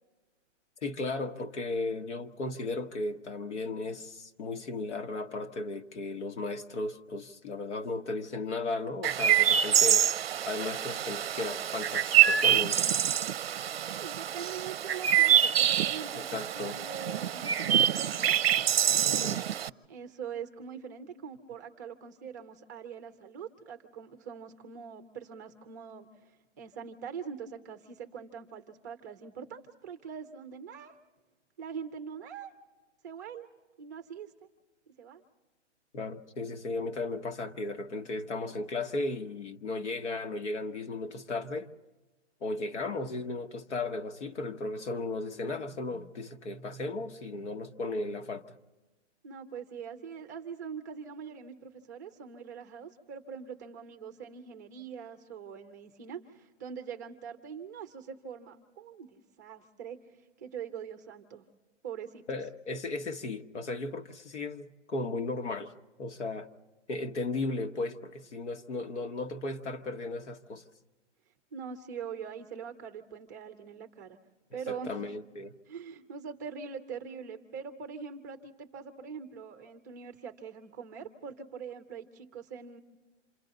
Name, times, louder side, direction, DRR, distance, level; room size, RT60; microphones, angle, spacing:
voice 1, 0.8-10.1 10.5-12.8 16.1-16.8 19.0-19.4 35.9-41.7 42.4-48.4 62.3-65.7 66.0-66.5 66.9-70.7 74.7-75.5, left 3 dB, 70° left, 1.6 m, -35 dB
Chirp tweet, 9.0-19.7, right 10 dB, 55° right, 0.6 m, -26 dB
voice 2, 13.9-18.4 19.0-19.4 19.9-31.0 31.6-32.5 33.0-33.5 33.8-34.3 35.0-35.2 49.2-61.4 61.8-62.2 71.5-74.2 74.5-75.0 75.7-82.8, right 6 dB, 15° right, 0.7 m, -43 dB
28.0 x 27.5 x 4.0 m
hypercardioid pair, 170°, 36 cm